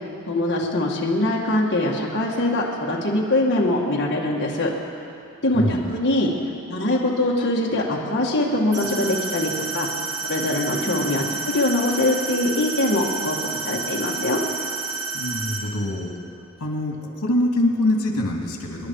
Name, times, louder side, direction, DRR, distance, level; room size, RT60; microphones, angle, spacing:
voice 1, 0.3-4.7 5.4-6.3 6.7-9.9 10.2-13.4 13.6-14.4, left 1 dB, 50° left, -3 dB, 2.1 m, -22 dB
voice 2, 5.5-5.9 15.1-16.1 16.6-18.9, left 1 dB, 80° left, 1 dB, 2.5 m, -24 dB
sound 1, 8.7-15.6, right 4 dB, 85° right, 4.6 m, -30 dB
26.0 x 11.0 x 4.8 m, 2.6 s
head